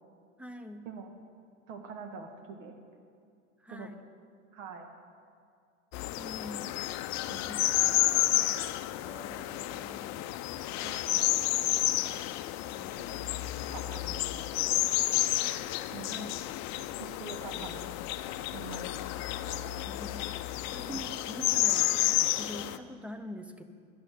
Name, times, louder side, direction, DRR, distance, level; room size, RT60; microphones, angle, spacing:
voice 1, 0.4-0.8 3.6-4.0 6.2-6.7 7.4-8.4 9.0-10.3 12.7-13.0 16.1-16.4 17.5-18.0 19.9-20.2 20.7-21.9 22.3-23.6, equal, 5° right, 8 dB, 0.5 m, -45 dB
voice 2, 1.7-2.8 3.7-3.9 4.5-4.9 7.3-7.5 10.8-11.4 13.1-13.2 13.7-14.2 14.5-14.6 14.9-15.3 15.9-16.3 17.0-17.9 18.5-18.9 19.4-19.9 20.9-21.0, right 5 dB, 75° right, 5 dB, 1.5 m, -45 dB
sound 1, 5.9-22.8, left 15 dB, 45° left, 0.5 m, -31 dB
11.0 x 6.3 x 9.1 m, 2.3 s
supercardioid pair, 105°, 39 cm